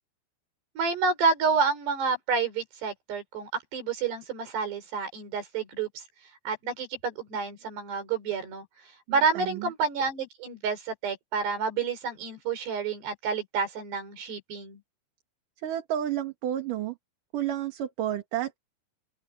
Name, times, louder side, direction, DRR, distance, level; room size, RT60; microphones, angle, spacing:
voice 1, 0.8-6.0 6.4-8.7 9.1-14.8, right 5 dB, 80° right, 6.8 m, -29 dB
voice 2, 9.1-9.7 15.6-17.0 17.3-18.6, right 11 dB, 60° right, 3.3 m, -31 dB
open air
omnidirectional pair, 4.7 m